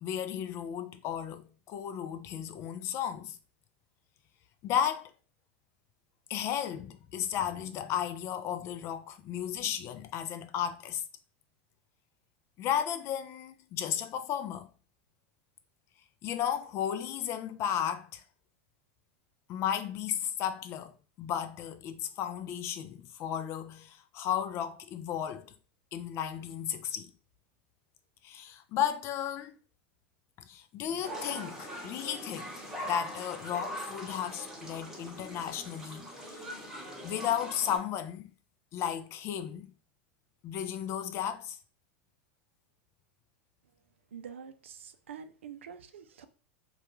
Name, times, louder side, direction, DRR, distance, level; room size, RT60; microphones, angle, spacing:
voice 1, 0.0-3.4 4.6-5.1 6.3-11.0 12.6-14.7 16.2-18.2 19.5-20.9 21.2-25.5 25.9-27.1 28.2-29.6 30.5-36.5 37.0-38.3 38.7-39.7 40.4-41.6, left 9 dB, 45° left, 0.4 m, -34 dB
sound 1, 31.0-37.8, equal, 5° right, 0.9 m, -42 dB
voice 2, 44.1-46.2, right 7 dB, 90° right, 0.4 m, -46 dB
2.3 x 2.2 x 3.0 m
hypercardioid pair, 105°, 6 cm